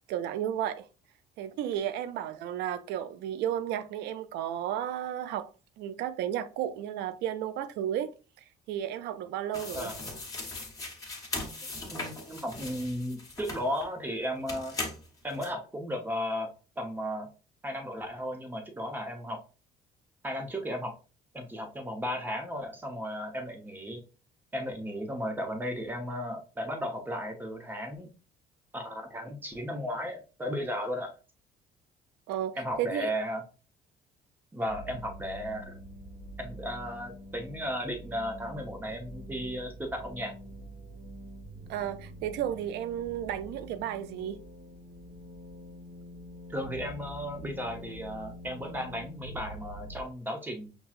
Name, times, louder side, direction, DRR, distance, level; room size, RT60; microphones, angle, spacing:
voice 1, 0.1-0.9 1.4-5.5 5.8-8.1 8.7-9.9 32.3-33.1 41.7-44.4, right 10 dB, 85° right, 0.4 m, -33 dB
sound 1, 9.5-13.9 14.5-15.5, left 2 dB, 20° left, 1.2 m, -39 dB
voice 2, 11.7-14.8 15.2-16.5 16.8-17.3 17.6-19.4 20.2-20.9 21.3-24.0 24.5-28.1 28.7-31.1 32.6-33.4 34.5-35.8 36.4-40.3 46.5-50.7, equal, 10° right, 0.9 m, -35 dB
sound 2, 34.6-50.0, equal, 45° right, 1.1 m, -46 dB
5.9 x 2.3 x 2.4 m
cardioid pair, 110°, 17 cm